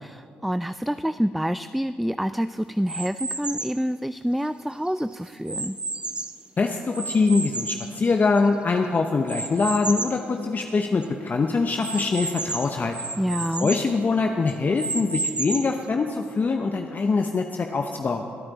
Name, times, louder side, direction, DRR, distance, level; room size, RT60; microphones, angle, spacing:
voice 1, 0.0-5.7 13.2-13.7, equal, ahead, 13 dB, 0.3 m, -27 dB
sound 1, 2.9-3.8 4.5-6.5 6.9-8.6 9.3-10.2 10.7-10.8 11.0-11.1 11.8-13.9 14.5-15.8, right 2 dB, 25° right, 0.8 m, -32 dB
voice 2, 6.6-13.0 13.6-18.3, left 4 dB, 40° left, 4 dB, 0.8 m, -23 dB
23.5 x 8.9 x 4.1 m, 2.5 s
hypercardioid pair, 50°, 4 cm